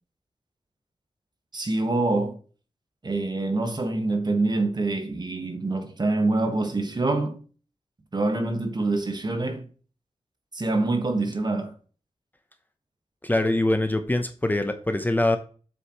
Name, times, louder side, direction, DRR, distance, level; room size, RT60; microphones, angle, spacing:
voice 1, 1.5-2.4 3.0-7.4 8.1-9.6 10.5-11.7, right 2 dB, 40° right, 1.4 m, -25 dB
voice 2, 13.2-15.4, left 1 dB, 15° left, 0.8 m, -23 dB
7.7 x 6.2 x 3.1 m
wide cardioid pair, 85°, 11 cm